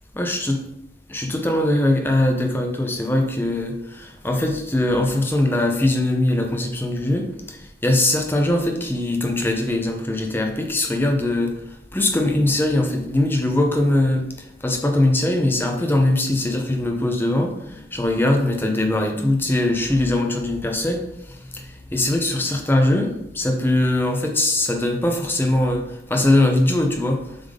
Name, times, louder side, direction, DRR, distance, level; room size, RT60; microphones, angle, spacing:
voice 1, 0.1-0.6 1.1-11.5 11.9-14.3 14.6-27.4, left 1 dB, 10° left, 3 dB, 0.7 m, -21 dB
7.3 x 3.6 x 3.7 m, 0.85 s
head